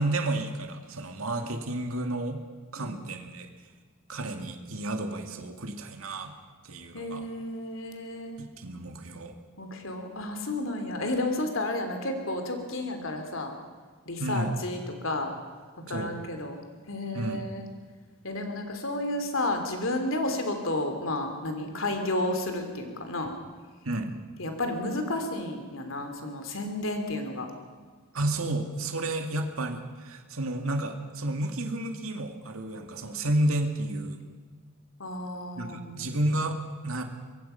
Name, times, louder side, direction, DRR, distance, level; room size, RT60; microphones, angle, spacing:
voice 1, 0.0-2.4 2.7-3.5 4.1-6.3 6.6-7.3 8.4-9.4 14.2-14.5 15.9-16.2 17.1-17.5 23.8-24.1 28.1-34.2 35.6-36.6 36.8-37.0, right 1 dB, 85° right, 5 dB, 2.2 m, -31 dB
voice 2, 6.9-8.4 9.6-13.5 14.1-15.3 15.9-16.6 16.9-17.6 18.2-23.3 24.4-27.5 35.0-36.0, left 1 dB, 70° left, 5 dB, 3.1 m, -32 dB
25.0 x 22.0 x 5.8 m, 1.5 s
head